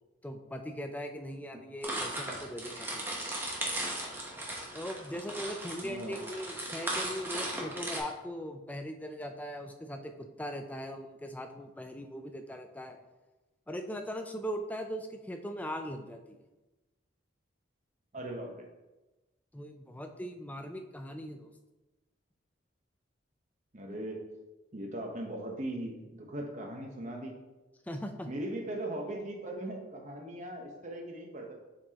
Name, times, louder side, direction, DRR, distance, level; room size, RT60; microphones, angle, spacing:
voice 1, 0.2-3.0 4.7-13.0 13.7-16.4 19.5-21.5 27.8-28.3, equal, 10° left, 5 dB, 0.4 m, -40 dB
sound 1, 1.8-8.0, right 1 dB, 10° right, 0.9 m, -37 dB
voice 2, 5.8-6.2 18.1-18.7 23.7-24.3 24.7-27.3 28.3-31.5, right 1 dB, 40° right, 1 dB, 1.0 m, -39 dB
7.3 x 4.5 x 2.9 m, 1.1 s
head